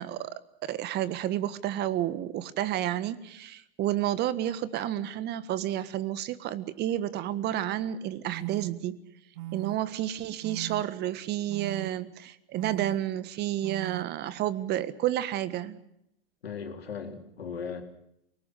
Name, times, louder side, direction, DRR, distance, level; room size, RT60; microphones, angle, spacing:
voice 1, 0.0-9.0 9.5-15.8, right 12 dB, 35° right, 16 dB, 1.5 m, -31 dB
sound 1, 8.3-8.7 9.4-9.8 10.4-10.8 11.5-11.9 12.6-13.0 13.6-14.0, right 16 dB, 55° right, 1.4 m, -38 dB
voice 2, 16.4-17.8, left 6 dB, 80° left, 4 dB, 4.1 m, -37 dB
29.0 x 19.5 x 6.4 m, 0.77 s
hypercardioid pair, 100°, 30 cm